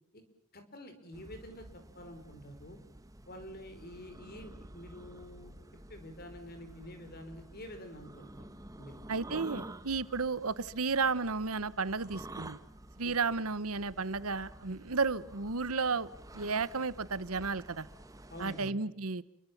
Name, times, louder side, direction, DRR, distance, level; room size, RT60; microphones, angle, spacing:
voice 1, 0.5-1.6 1.9-2.8 3.3-5.5 5.9-8.5 8.8-9.0 13.0-13.3 18.3-18.8, equal, 45° left, 7 dB, 4.9 m, -48 dB
sound 1, 1.1-18.7, right 1 dB, 15° right, 1.1 m, -50 dB
voice 2, 9.1-12.6 13.0-16.1 16.3-17.9 18.4-19.2, right 4 dB, 75° right, 17 dB, 1.1 m, -33 dB
30.0 x 23.5 x 7.3 m, 0.71 s
head